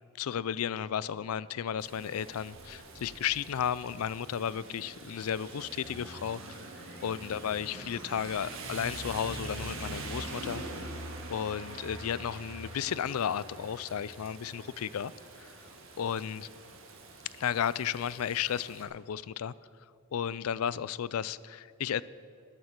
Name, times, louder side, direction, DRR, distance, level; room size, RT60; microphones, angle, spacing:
voice 1, 0.1-6.6 7.0-10.6 11.3-15.1 15.4-15.6 16.0-16.5 17.3-19.5 20.1-22.0, left 8 dB, 85° left, 19 dB, 0.4 m, -33 dB
Rain, 1.8-18.8, right 2 dB, 65° right, 1.9 m, -44 dB
sound 1, 2.3-9.0, left 1 dB, 10° left, 2.1 m, -59 dB
13.0 x 11.5 x 5.9 m, 2.5 s
head